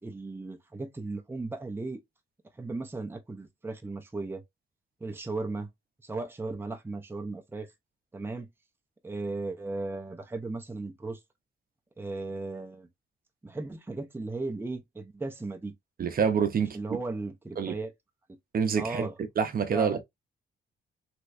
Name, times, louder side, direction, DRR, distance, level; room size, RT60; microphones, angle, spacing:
voice 1, 0.0-2.0 2.6-4.4 5.0-5.7 6.0-7.7 8.1-8.5 9.0-11.2 12.0-12.9 13.4-15.7 16.6-17.9 18.8-19.1 19.7-20.0, right 3 dB, 10° right, 0.7 m, -36 dB
voice 2, 16.0-16.8 17.6-17.7 18.5-19.1 19.4-20.0, right 6 dB, 50° right, 0.7 m, -26 dB
3.3 x 3.0 x 2.5 m
cardioid pair, 95°, 19 cm